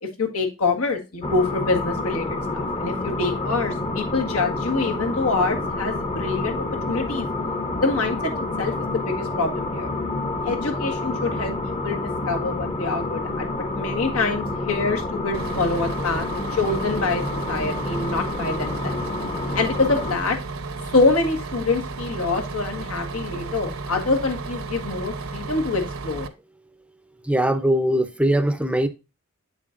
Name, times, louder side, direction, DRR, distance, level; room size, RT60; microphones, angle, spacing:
voice 1, 0.0-6.6 6.9-7.3 7.8-8.3 8.6-9.9 10.4-12.0 12.3-13.5 13.7-16.3 16.5-17.2 17.5-19.0 19.5-20.4 20.9-26.3, left 3 dB, 80° left, 1.7 m, -25 dB
sound 1, 1.2-20.2, left 2 dB, 25° left, 0.9 m, -28 dB
Bus, 15.3-26.3, right 3 dB, 70° right, 0.9 m, -33 dB
voice 2, 27.3-28.9, right 1 dB, 5° right, 0.6 m, -21 dB
8.2 x 7.2 x 2.5 m
head